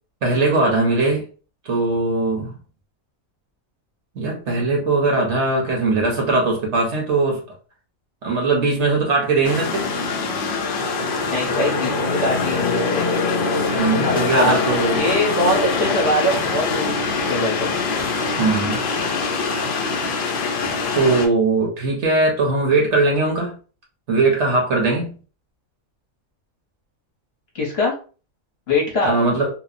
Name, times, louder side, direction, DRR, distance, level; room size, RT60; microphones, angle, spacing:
voice 1, 0.2-1.2 1.6-2.5 4.2-7.4 8.2-9.9 13.8-15.0 18.4-18.8 20.9-23.6 24.1-25.1 29.0-29.5, right 3 dB, 60° right, 0.9 m, -20 dB
sound 1, 9.4-21.3, left 4 dB, 90° left, 0.4 m, -23 dB
voice 2, 11.3-13.1 14.0-14.6 14.9-17.0 17.2-17.8 27.5-27.9 28.7-29.1, left 1 dB, 50° left, 0.9 m, -22 dB
2.8 x 2.0 x 2.4 m
omnidirectional pair, 1.5 m